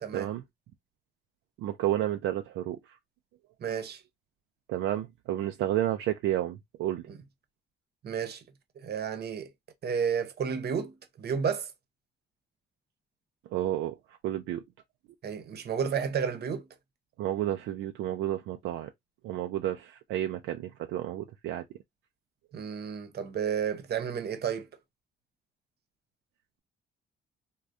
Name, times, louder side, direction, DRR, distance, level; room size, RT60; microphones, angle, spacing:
voice 1, 1.6-2.8 4.7-7.0 13.5-13.9 14.2-14.6 17.2-18.9 19.2-21.6, right 12 dB, 90° right, 0.4 m, -31 dB
voice 2, 3.6-4.0 7.1-7.2 8.0-8.4 8.8-9.5 9.8-11.7 15.2-16.7 22.5-24.7, right 7 dB, 55° right, 0.8 m, -31 dB
3.5 x 2.3 x 2.5 m
cardioid pair, 90°, 20 cm